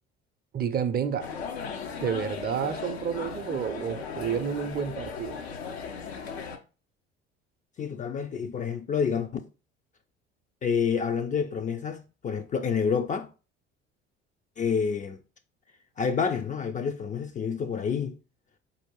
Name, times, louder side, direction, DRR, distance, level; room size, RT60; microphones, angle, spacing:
voice 1, 0.5-1.3 2.0-5.4, right 7 dB, 30° right, 0.5 m, -30 dB
sound 1, 1.2-6.6, left 6 dB, 80° left, 0.6 m, -37 dB
voice 2, 7.8-9.3 10.6-13.3 14.6-15.2 16.0-18.1, left 6 dB, 25° left, 0.4 m, -28 dB
4.4 x 2.6 x 3.0 m
figure-of-eight pair, 55°, 31 cm